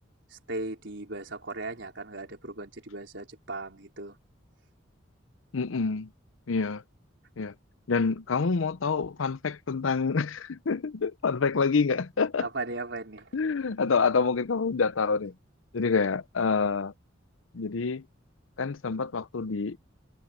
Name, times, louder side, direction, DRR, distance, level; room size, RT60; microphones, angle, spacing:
voice 1, 0.3-4.2 12.4-13.3, right 2 dB, 65° right, 4.7 m, -37 dB
voice 2, 5.5-6.1 6.5-6.8 7.4-7.5 7.9-12.5 13.3-15.3 15.7-16.9 17.5-18.0 18.6-19.8, left 5 dB, 85° left, 0.6 m, -27 dB
head